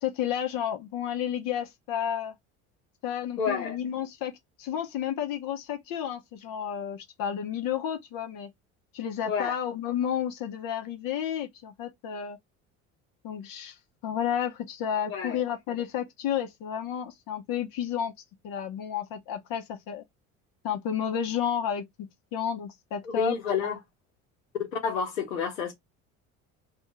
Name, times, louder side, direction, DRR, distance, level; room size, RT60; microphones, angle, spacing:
voice 1, 0.0-2.3 3.0-4.3 4.6-8.5 8.9-12.4 13.2-13.8 14.0-18.1 18.4-20.0 20.6-21.8 22.3-23.4, left 9 dB, 55° left, 0.8 m, -31 dB
voice 2, 3.4-3.8 9.2-9.5 15.1-15.4 23.0-23.8 24.7-25.7, left 5 dB, 90° left, 1.0 m, -29 dB
2.4 x 2.3 x 3.0 m
hypercardioid pair, 65°, 39 cm